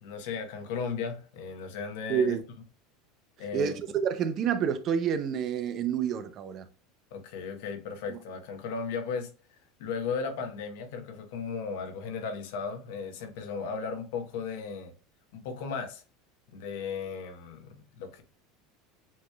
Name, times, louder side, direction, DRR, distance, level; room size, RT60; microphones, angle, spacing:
voice 1, 0.0-2.4 3.4-3.7 7.1-9.3 9.8-14.9 15.3-16.0 16.5-18.2, left 5 dB, 75° left, 1.1 m, -36 dB
voice 2, 2.1-2.4 3.5-6.7 8.1-8.2, right 7 dB, 40° right, 0.6 m, -28 dB
7.4 x 3.1 x 2.3 m
supercardioid pair, 130°, 0 cm